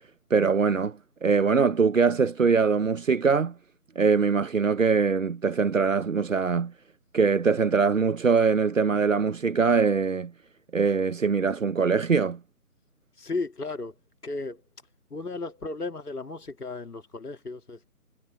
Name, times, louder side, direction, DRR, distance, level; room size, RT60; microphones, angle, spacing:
voice 1, 0.3-3.5 4.0-6.7 7.1-10.3 10.7-12.4, right 5 dB, 60° right, 0.8 m, -23 dB
voice 2, 13.2-13.9 14.2-14.6 15.1-17.9, left 3 dB, 85° left, 2.4 m, -34 dB
figure-of-eight pair, 175°, 45 cm